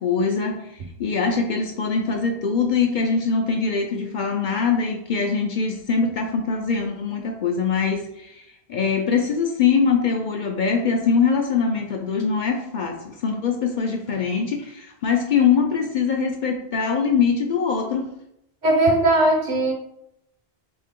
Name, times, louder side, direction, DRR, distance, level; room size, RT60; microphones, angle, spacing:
voice 1, 0.0-18.0, left 5 dB, 55° left, 2 dB, 0.6 m, -23 dB
voice 2, 18.6-19.7, right 1 dB, 50° right, 2 dB, 0.9 m, -18 dB
3.5 x 3.3 x 3.6 m, 0.81 s
omnidirectional pair, 1.0 m